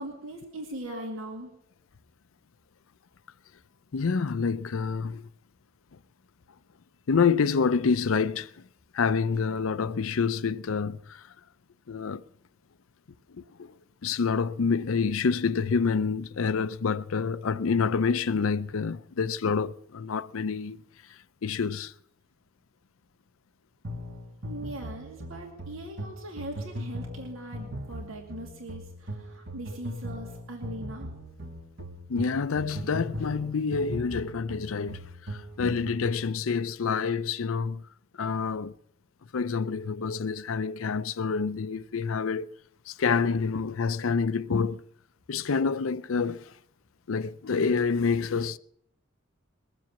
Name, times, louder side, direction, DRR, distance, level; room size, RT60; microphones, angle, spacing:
voice 1, 0.0-1.5 24.4-31.1, right 1 dB, 85° right, 2.4 m, -40 dB
voice 2, 3.9-5.2 7.1-8.5 8.9-11.2 11.9-12.2 13.4-13.7 14.0-20.8 21.4-21.9 32.1-35.0 35.3-37.8 38.2-38.7 39.3-42.5 42.9-44.8 45.3-46.4 47.1-48.6, left 5 dB, 85° left, 0.5 m, -27 dB
sound 1, 23.8-36.3, equal, 55° right, 1.5 m, -39 dB
21.5 x 7.6 x 7.1 m
head